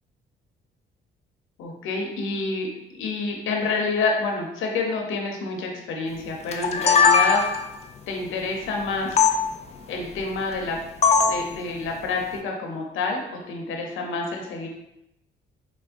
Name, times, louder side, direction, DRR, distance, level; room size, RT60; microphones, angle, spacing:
voice 1, 1.6-7.4 8.1-9.2 9.9-10.8 11.2-13.2 13.5-14.7, left 3 dB, 85° left, 1 dB, 0.7 m, -28 dB
sound 1, 6.5-7.8 9.2-9.3 11.0-11.4, left 6 dB, 35° left, 0.4 m, -18 dB
4.3 x 2.1 x 2.4 m, 0.86 s
cardioid pair, 90°, 20 cm